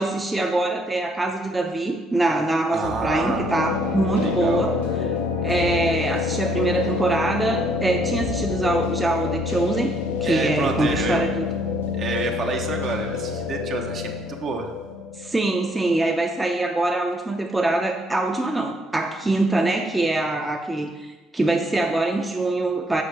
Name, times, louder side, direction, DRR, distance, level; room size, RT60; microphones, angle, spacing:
voice 1, 0.0-4.7 5.4-11.5 15.2-20.9 21.3-23.0, right 2 dB, 15° right, 2 dB, 0.6 m, -23 dB
voice 2, 2.7-3.5 4.2-4.7 10.2-11.2 11.9-14.7, right 4 dB, 50° right, 3 dB, 0.8 m, -28 dB
sound 1, 2.8-16.5, left 6 dB, 85° left, 0.6 m, -27 dB
6.4 x 4.7 x 3.4 m, 1.2 s
hypercardioid pair, 65°, 0 cm